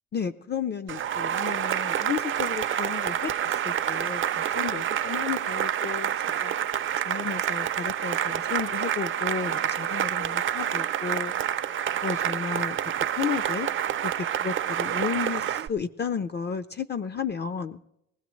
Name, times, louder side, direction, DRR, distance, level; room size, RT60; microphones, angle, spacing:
voice 1, 0.1-6.6 7.0-11.3 12.0-13.7 14.0-17.8, left 6 dB, 35° left, 12 dB, 0.5 m, -33 dB
Cheering / Applause, 0.9-15.7, right 10 dB, 40° right, 0.5 m, -28 dB
20.0 x 15.5 x 3.1 m, 0.84 s
cardioid pair, 90°, 30 cm